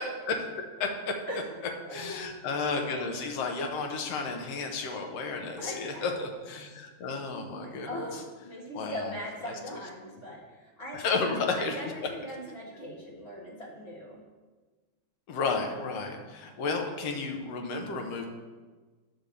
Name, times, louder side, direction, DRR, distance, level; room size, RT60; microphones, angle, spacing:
voice 1, 0.3-1.2 1.9-8.1 8.7-9.1 9.5-9.6 10.9-12.1 15.3-18.3, left 4 dB, 65° left, 3 dB, 1.9 m, -32 dB
voice 2, 1.8-2.3 5.6-6.1 7.5-11.0 11.5-14.2, equal, 30° left, -4 dB, 1.5 m, -40 dB
10.0 x 3.5 x 7.0 m, 1.3 s
omnidirectional pair, 3.3 m